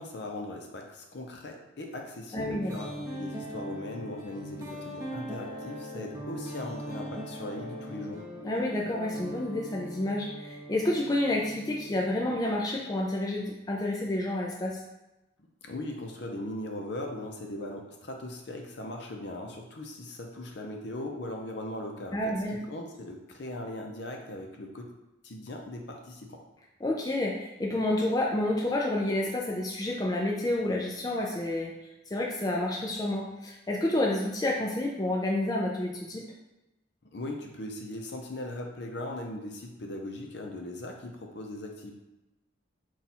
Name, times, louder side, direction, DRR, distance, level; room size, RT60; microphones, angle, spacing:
voice 1, 0.0-8.3 15.6-24.9 25.2-26.4 37.1-41.9, left 1 dB, 60° left, 2 dB, 0.6 m, -39 dB
voice 2, 2.3-2.7 8.4-14.8 22.1-22.6 26.8-31.7 32.1-36.2, left 1 dB, 20° left, -2 dB, 0.4 m, -29 dB
sound 1, 2.4-12.9, equal, 15° right, 0.7 m, -41 dB
4.1 x 2.4 x 4.1 m, 0.98 s
head